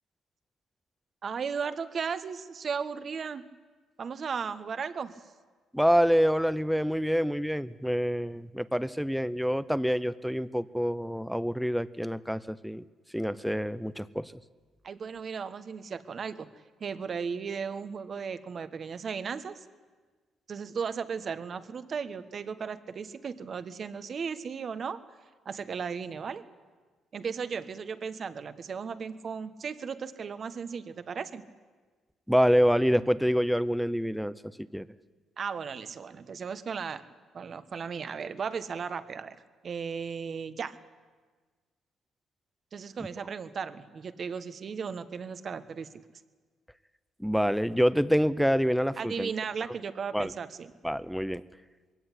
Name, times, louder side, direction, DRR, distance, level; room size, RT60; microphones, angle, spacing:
voice 1, 1.2-3.5 4.0-5.1 14.8-16.5 16.8-19.6 20.5-25.0 25.4-26.4 27.1-31.4 35.4-37.0 37.3-39.4 39.6-40.8 42.7-45.9 49.0-50.7, right 6 dB, 50° right, 12 dB, 1.3 m, -36 dB
voice 2, 5.7-12.8 13.1-14.3 32.3-34.9 47.2-49.3 50.1-50.3 50.8-51.4, equal, ahead, 16 dB, 0.7 m, -26 dB
21.5 x 16.5 x 10.0 m, 1.4 s
cardioid pair, 90°, 0 cm